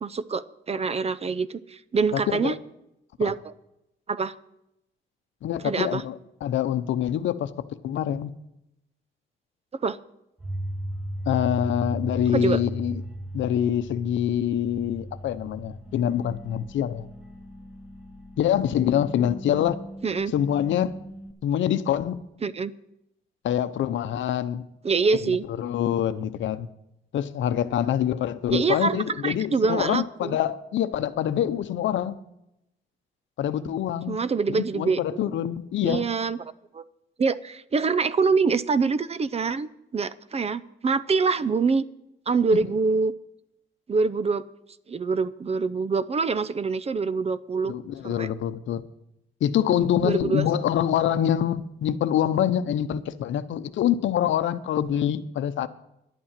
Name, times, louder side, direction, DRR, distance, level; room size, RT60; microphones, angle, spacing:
voice 1, 0.0-2.6 3.2-3.5 4.1-4.3 5.6-6.0 9.8-10.0 12.3-12.6 20.0-20.3 22.4-22.7 24.8-25.4 28.5-30.4 34.1-35.3 35.8-36.4 36.7-36.8 37.2-41.8 42.3-43.1 43.9-44.4 44.9-47.7 48.0-48.3 50.0-50.5, right 4 dB, 30° right, 17 dB, 0.6 m, -25 dB
voice 2, 5.4-6.1 6.4-8.3 11.3-13.0 13.3-17.0 18.4-19.8 20.3-20.9 21.4-22.2 23.4-24.7 25.5-26.7 27.1-32.2 33.4-34.2 34.5-36.0 42.5-42.6 47.7-48.8 49.4-55.7, left 10 dB, 70° left, 12 dB, 0.8 m, -25 dB
sound 1, 10.4-21.3, equal, 5° right, 1.4 m, -37 dB
11.0 x 8.7 x 7.4 m, 0.85 s
cardioid pair, 90°, 20 cm